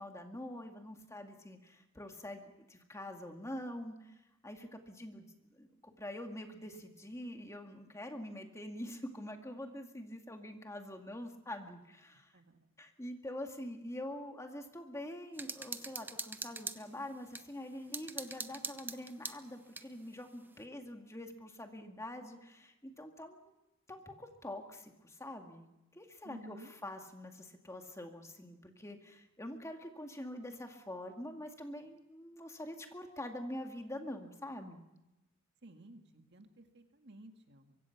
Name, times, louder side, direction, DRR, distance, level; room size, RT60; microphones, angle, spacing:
voice 1, 0.0-4.1 4.4-5.3 5.5-12.3 12.8-23.4 23.9-25.6 25.9-34.8, left 1 dB, 15° left, 4 dB, 2.2 m, -45 dB
sound 1, 15.4-17.5 17.9-19.9, right 3 dB, 10° right, 0.8 m, -43 dB
voice 2, 26.2-26.7 35.6-37.8, right 1 dB, 55° right, 5 dB, 2.0 m, -53 dB
24.5 x 23.5 x 6.0 m, 0.97 s
head